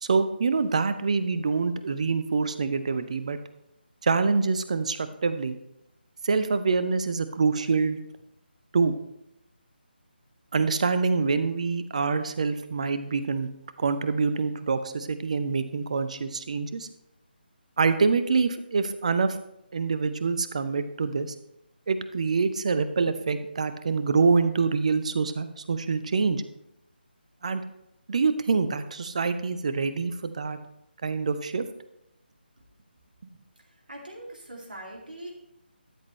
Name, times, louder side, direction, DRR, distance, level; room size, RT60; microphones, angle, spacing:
voice 1, 0.0-3.4 4.0-5.6 6.2-8.0 8.7-8.9 10.5-13.5 13.8-16.9 17.8-19.4 19.7-21.3 21.9-26.4 27.4-27.6 28.1-30.6 31.0-31.6, right 4 dB, 40° right, 11 dB, 0.6 m, -25 dB
voice 2, 33.9-35.3, right 1 dB, 55° right, -1 dB, 2.4 m, -41 dB
12.5 x 7.3 x 3.1 m, 0.84 s
figure-of-eight pair, 155°, 6 cm